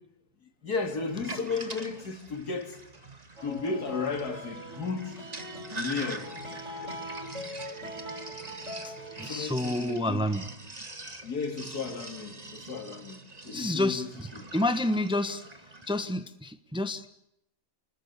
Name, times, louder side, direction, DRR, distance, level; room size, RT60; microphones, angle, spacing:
voice 1, 0.6-2.8 3.4-5.2 5.7-6.3 9.2-10.3 11.2-14.5, left 4 dB, 90° left, 3.1 m, -34 dB
Sink (filling or washing), 1.1-16.1, right 2 dB, 25° right, 2.1 m, -44 dB
sound 1, 3.4-9.4, equal, 50° right, 7.0 m, -42 dB
voice 2, 9.2-10.5 13.5-14.3 14.5-15.4 15.9-17.1, left 1 dB, 5° right, 1.0 m, -29 dB
30.0 x 20.0 x 8.2 m
omnidirectional pair, 1.6 m